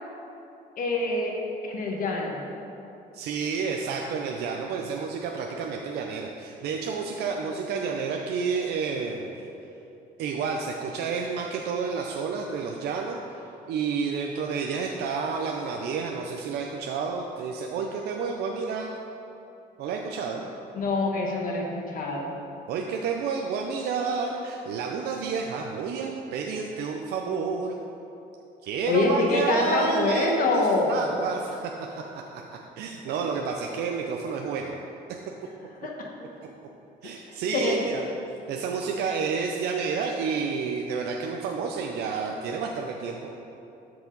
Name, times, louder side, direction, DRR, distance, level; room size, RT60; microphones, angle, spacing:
voice 1, 0.8-1.4 1.6-2.4 20.7-22.3 28.9-31.0 35.8-36.3 37.0-37.2 37.5-37.8, left 3 dB, 55° left, 0 dB, 1.3 m, -26 dB
voice 2, 3.1-9.4 10.2-13.2 13.7-19.0 19.8-20.5 22.7-27.9 28.6-32.0 32.3-34.7 37.0-38.0 38.5-43.2, right 5 dB, 75° right, 1 dB, 0.6 m, -30 dB
13.0 x 4.8 x 3.9 m, 2.8 s
cardioid pair, 110°, 17 cm